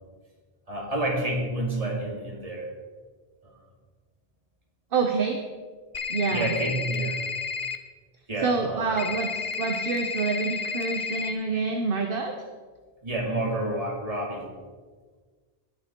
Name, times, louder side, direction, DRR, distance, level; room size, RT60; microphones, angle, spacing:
voice 1, 0.7-2.7 6.3-7.2 8.3-8.9 13.0-14.4, right 1 dB, 35° right, -1 dB, 2.4 m, -29 dB
voice 2, 4.9-5.4 6.1-6.5 8.4-12.3, right 4 dB, 60° right, 4 dB, 1.1 m, -27 dB
sound 1, 5.9-7.8 9.0-11.3, left 5 dB, 35° left, 0.8 m, -31 dB
19.0 x 6.7 x 4.5 m, 1.5 s
omnidirectional pair, 1.0 m